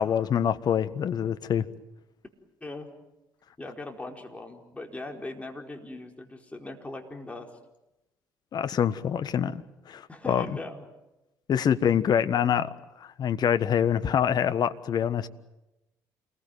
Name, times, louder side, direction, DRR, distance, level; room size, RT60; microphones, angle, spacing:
voice 1, 0.0-1.7 8.5-10.6 11.5-12.7 13.0-15.3, left 8 dB, 45° left, 12 dB, 1.4 m, -25 dB
voice 2, 3.6-7.5 10.1-10.8, left 2 dB, 15° left, 2 dB, 4.7 m, -40 dB
28.5 x 21.5 x 9.3 m, 0.96 s
figure-of-eight pair, 50°, 10 cm